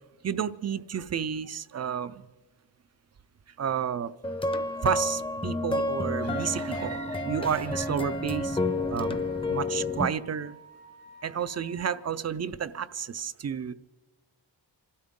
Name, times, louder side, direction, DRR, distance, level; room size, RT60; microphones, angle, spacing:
voice 1, 0.2-2.2 3.6-4.1 4.8-9.2 9.5-10.6 11.2-13.7, right 8 dB, 40° right, 0.4 m, -31 dB
sound 1, 4.2-10.1, left 2 dB, 15° left, 0.6 m, -30 dB
Wind instrument woodwind instrument, 7.2-12.1, equal, 90° right, 3.6 m, -51 dB
27.0 x 13.0 x 3.7 m
wide cardioid pair, 155°, 44 cm